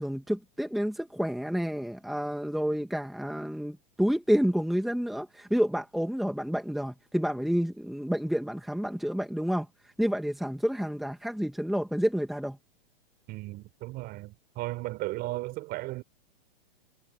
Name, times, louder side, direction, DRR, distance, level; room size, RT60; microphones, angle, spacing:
voice 1, 0.0-9.7 10.0-12.6, equal, ahead, 2.1 m, -29 dB
voice 2, 13.3-16.0, right 19 dB, 35° right, 4.9 m, -35 dB
hypercardioid pair, 145°, 29 cm